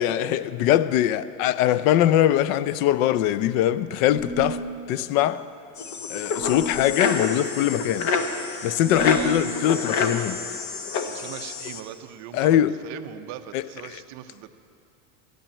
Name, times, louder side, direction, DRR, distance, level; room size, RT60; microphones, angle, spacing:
voice 1, 0.0-4.6 4.9-5.4 6.1-8.1 8.6-10.4 12.3-12.7 13.5-13.6, left 12 dB, 65° left, 0.6 m, -22 dB
sound 1, 4.1-4.7 6.4-7.0 8.8-9.5, right 2 dB, 10° left, 1.3 m, -34 dB
sound 2, 5.8-11.8, left 5 dB, 40° left, 1.0 m, -28 dB
voice 2, 8.9-9.4 11.1-14.5, right 12 dB, 40° right, 0.7 m, -39 dB
12.5 x 9.2 x 8.7 m
supercardioid pair, 145°, 45 cm